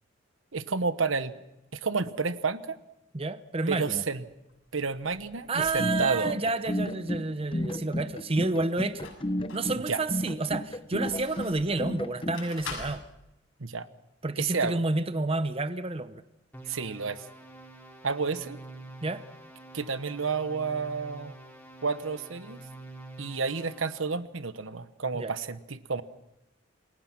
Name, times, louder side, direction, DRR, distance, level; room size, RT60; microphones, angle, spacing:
voice 1, 0.5-1.4 1.7-2.8 3.7-4.2 4.7-6.3 9.9-10.0 13.6-13.9 14.4-14.8 16.7-17.2 18.0-18.6 19.7-21.3 21.8-22.6 23.2-26.0, right 4 dB, 85° right, 12 dB, 1.2 m, -30 dB
voice 2, 3.1-4.0 5.5-9.1 9.5-13.0 14.2-16.2 19.0-19.2 25.1-25.3, right 2 dB, 30° right, 12 dB, 0.8 m, -30 dB
sound 1, 4.3-5.9 8.6-9.7 10.3-11.8 12.3-13.0, left 4 dB, 85° left, 7.3 m, -43 dB
sound 2, 5.6-12.4, left 1 dB, 25° left, 1.0 m, -32 dB
sound 3, 16.5-24.1, right 2 dB, 10° left, 5.2 m, -47 dB
28.5 x 21.5 x 5.9 m, 0.89 s
head